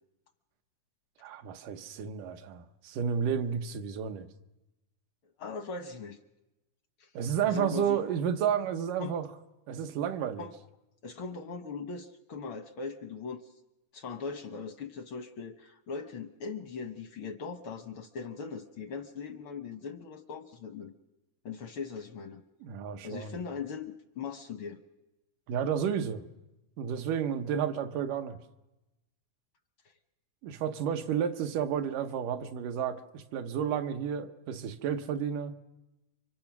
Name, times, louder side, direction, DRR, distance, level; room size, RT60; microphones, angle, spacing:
voice 1, 1.2-4.3 7.1-9.3 9.7-10.4 22.6-23.4 25.5-26.2 26.8-28.4 30.4-35.5, right 8 dB, 85° right, 8 dB, 2.7 m, -31 dB
voice 2, 5.4-6.2 7.0-7.1 7.5-8.0 9.0-9.2 10.4-10.5 11.0-13.5 13.9-20.9 21.4-22.4 23.0-24.8, left 5 dB, 70° left, 9 dB, 1.2 m, -40 dB
30.0 x 25.0 x 6.0 m, 0.99 s
omnidirectional pair, 3.6 m